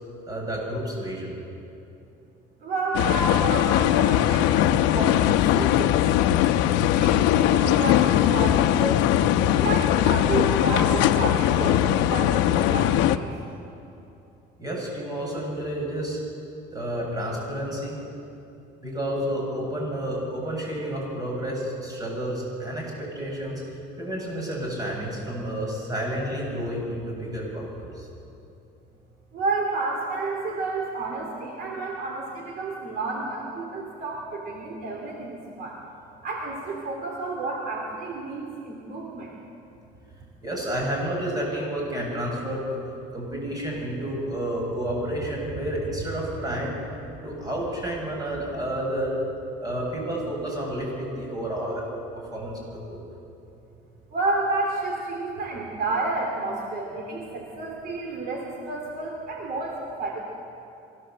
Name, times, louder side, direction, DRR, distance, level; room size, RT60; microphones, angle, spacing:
voice 1, 0.3-1.4 14.6-16.2 16.7-18.0 18.8-23.6 24.0-28.1 40.4-42.6 43.1-46.9 47.2-49.1 49.6-51.8 52.3-52.6, right 1 dB, 20° right, -2 dB, 7.6 m, -30 dB
voice 2, 2.6-9.0 9.5-13.3 29.3-35.8 36.2-39.3 54.1-60.2, right 3 dB, 55° right, 0 dB, 3.2 m, -30 dB
sound 1, 2.9-13.2, left 12 dB, 90° left, 0.8 m, -20 dB
24.0 x 16.5 x 7.8 m, 2.8 s
cardioid pair, 120°, 18 cm